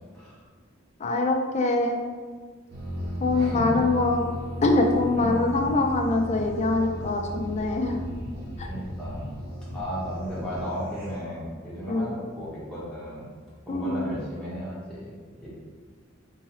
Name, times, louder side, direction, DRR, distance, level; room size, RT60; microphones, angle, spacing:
voice 1, 1.0-2.0 3.2-4.2 4.6-8.0 11.9-12.1 13.7-14.1, left 2 dB, 35° left, 2 dB, 0.3 m, -24 dB
sound 1, 2.7-11.2, equal, 50° right, 0.9 m, -35 dB
voice 2, 3.3-3.8 5.1-5.6 8.7-9.3 9.7-13.3 13.6-15.5, equal, 5° left, -9 dB, 0.9 m, -35 dB
3.8 x 2.6 x 2.8 m, 1.5 s
head